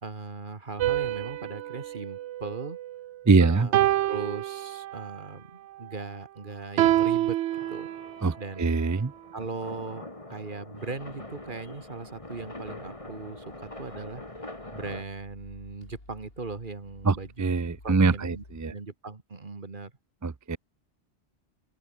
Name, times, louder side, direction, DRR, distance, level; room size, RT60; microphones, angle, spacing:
voice 1, 0.0-2.8 3.4-7.4 7.7-7.9 8.4-8.7 9.3-17.3 17.8-19.9, right 3 dB, 45° right, 2.0 m, -39 dB
sound 1, 0.8-3.2 3.7-5.2 6.8-8.3, right 13 dB, 80° right, 0.9 m, -27 dB
voice 2, 3.3-3.7 8.2-9.1 17.1-18.7 20.2-20.6, right 4 dB, 25° right, 0.4 m, -23 dB
sound 2, 7.5-15.0, left 1 dB, 30° left, 3.2 m, -44 dB
sound 3, 10.8-18.7, left 2 dB, 55° left, 4.8 m, -54 dB
open air
omnidirectional pair, 1.2 m